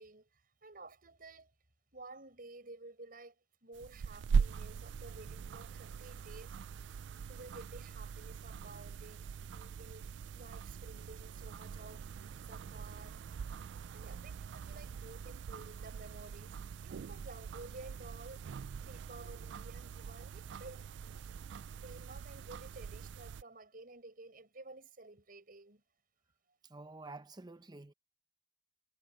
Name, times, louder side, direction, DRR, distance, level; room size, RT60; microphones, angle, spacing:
voice 1, 0.0-1.5 1.9-3.3 3.6-6.5 7.3-12.0 12.4-13.2 13.9-16.6 16.8-18.4 18.8-20.9 21.3-25.8, right 2 dB, 50° right, 6.8 m, -53 dB
sound 1, 3.8-23.4, right 6 dB, 70° right, 0.3 m, -41 dB
voice 2, 26.7-27.9, right 3 dB, 25° right, 0.7 m, -49 dB
head